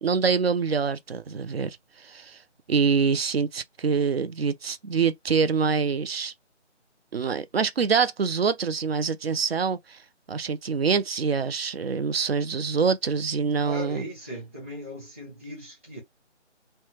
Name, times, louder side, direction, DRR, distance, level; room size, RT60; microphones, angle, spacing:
voice 1, 0.0-2.4 2.7-6.3 7.1-10.0 10.3-14.0, right 5 dB, 60° right, 0.5 m, -25 dB
voice 2, 13.6-16.0, equal, 10° right, 0.9 m, -38 dB
3.2 x 2.2 x 2.8 m
figure-of-eight pair, 170°, 35 cm